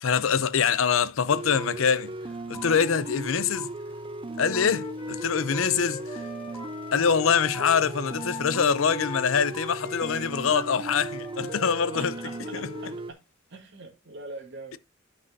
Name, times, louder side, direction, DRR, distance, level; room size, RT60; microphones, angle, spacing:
voice 1, 0.0-2.1 2.5-3.7 4.4-6.2 6.9-12.1 12.5-12.7, left 6 dB, 75° left, 0.6 m, -24 dB
sound 1, 0.9-1.0 1.2-12.4, equal, 5° left, 1.7 m, -47 dB
sound 2, 1.3-13.1, right 2 dB, 25° right, 0.6 m, -37 dB
Wind instrument woodwind instrument, 4.4-12.9, left 3 dB, 25° left, 1.3 m, -42 dB
voice 2, 11.9-13.2 13.5-14.8, right 2 dB, 60° right, 2.2 m, -43 dB
12.0 x 5.5 x 2.6 m
head